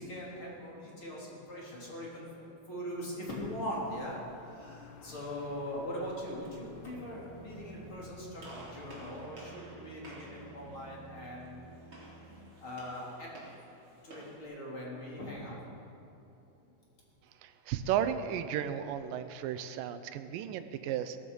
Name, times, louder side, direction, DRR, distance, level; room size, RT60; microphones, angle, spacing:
voice 1, 0.0-8.4 8.7-11.7 12.6-13.3 14.0-15.6, equal, 35° left, -4 dB, 3.8 m, -41 dB
sound 1, 3.4-9.3, left 8 dB, 75° left, 2.4 m, -55 dB
sound 2, 6.7-12.5, right 4 dB, 50° right, 1.8 m, -53 dB
Gunshot gunfire, 8.4-14.4, right 1 dB, 35° right, 4.5 m, -52 dB
voice 2, 17.4-21.2, right 9 dB, 80° right, 10 dB, 2.3 m, -34 dB
17.5 x 15.0 x 5.5 m, 3.0 s
omnidirectional pair, 4.2 m